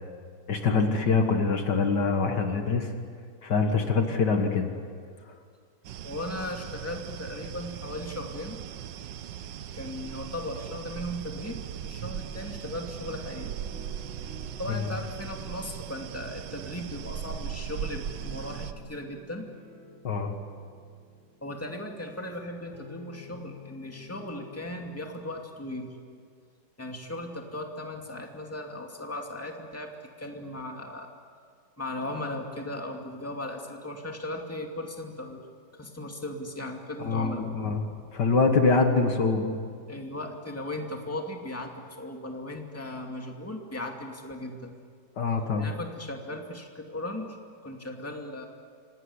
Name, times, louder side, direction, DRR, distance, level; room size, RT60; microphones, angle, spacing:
voice 1, 0.5-2.9 3.4-4.7 14.7-14.8 20.0-20.3 37.0-37.8 38.1-39.5 45.2-45.7, left 4 dB, 60° left, 5 dB, 2.1 m, -24 dB
sound 1, 5.8-18.7, right 9 dB, 70° right, 1.5 m, -38 dB
voice 2, 6.0-8.6 9.7-13.6 14.6-19.5 21.4-25.9 26.8-29.9 30.2-31.1 31.8-35.4 35.8-37.8 39.9-44.7 45.6-47.4 47.6-48.5, left 1 dB, 5° left, 2 dB, 2.3 m, -37 dB
sound 2, 11.1-24.8, left 4 dB, 10° right, 6.2 m, -51 dB
26.5 x 18.5 x 9.8 m, 2.1 s
omnidirectional pair, 2.1 m